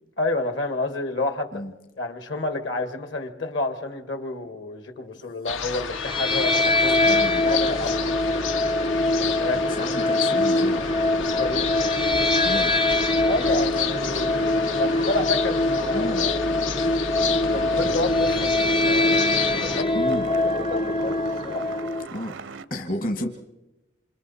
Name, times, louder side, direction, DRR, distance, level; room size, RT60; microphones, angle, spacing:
voice 1, 0.2-1.6 2.0-8.4 9.2-9.9 10.6-12.3 13.3-14.4 14.8-16.6 17.5-19.2 19.5-20.2 20.5-21.7, left 2 dB, 65° left, 1.7 m, -30 dB
sound 1, 5.5-19.8, left 7 dB, 80° left, 0.9 m, -31 dB
sound 2, 5.9-22.1, left 2 dB, 25° left, 0.7 m, -23 dB
voice 2, 7.0-7.4 9.7-10.8 12.4-12.7 14.1-14.3 15.9-16.3 19.9-20.3 22.1-22.3 22.7-23.3, equal, 50° left, 1.4 m, -31 dB
sound 3, 17.1-22.7, right 4 dB, 75° right, 0.7 m, -39 dB
28.0 x 27.0 x 4.2 m
head